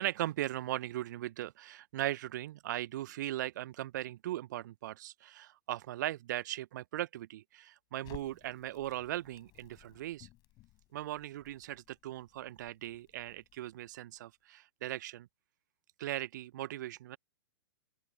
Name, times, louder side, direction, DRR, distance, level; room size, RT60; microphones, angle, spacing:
voice 1, 0.0-10.3 10.9-15.3 16.0-17.2, right 14 dB, 50° right, 1.0 m, -38 dB
Crackle, 8.0-14.2, left 19 dB, 30° left, 6.6 m, -58 dB
open air
figure-of-eight pair, 110°, 13 cm